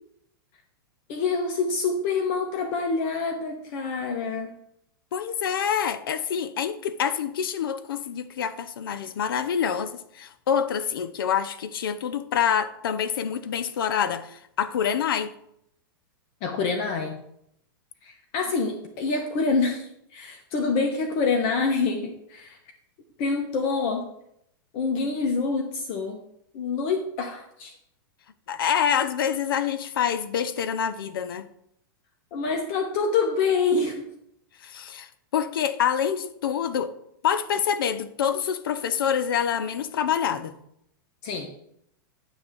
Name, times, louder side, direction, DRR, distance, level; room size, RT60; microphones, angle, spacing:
voice 1, 1.1-4.6 16.4-17.2 18.0-22.6 23.2-24.1 24.7-26.2 26.5-27.8 32.3-34.0 41.2-41.5, left 4 dB, 45° left, 1.1 m, -26 dB
voice 2, 5.1-15.3 28.5-31.5 34.6-36.9 37.2-40.5, left 8 dB, 80° left, 0.7 m, -26 dB
9.1 x 3.5 x 6.7 m
hypercardioid pair, 130°, 12 cm